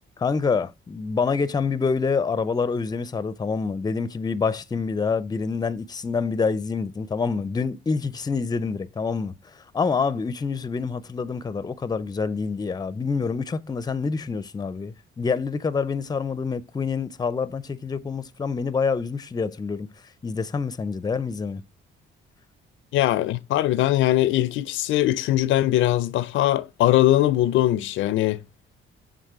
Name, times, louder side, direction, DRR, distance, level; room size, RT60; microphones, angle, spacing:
voice 1, 0.2-19.9 20.2-21.6, left 5 dB, 20° left, 0.5 m, -27 dB
voice 2, 22.9-28.4, left 14 dB, 80° left, 0.5 m, -21 dB
6.5 x 3.8 x 4.7 m
cardioid pair, 90°, 20 cm